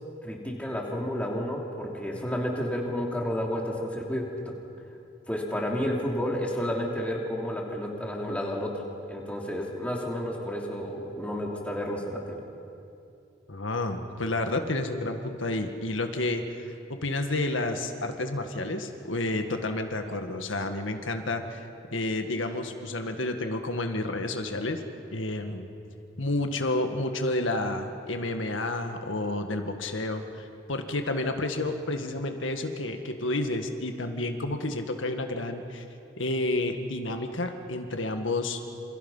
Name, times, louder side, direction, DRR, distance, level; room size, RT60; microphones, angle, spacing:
voice 1, 0.2-4.6 5.3-8.8 9.1-12.4, equal, 5° left, -1 dB, 2.9 m, -31 dB
voice 2, 13.5-16.6 16.9-21.6 21.9-24.8 25.1-25.7 26.2-35.9 36.2-38.7, left 2 dB, 85° left, 6 dB, 1.8 m, -30 dB
28.0 x 27.5 x 5.6 m, 2.7 s
head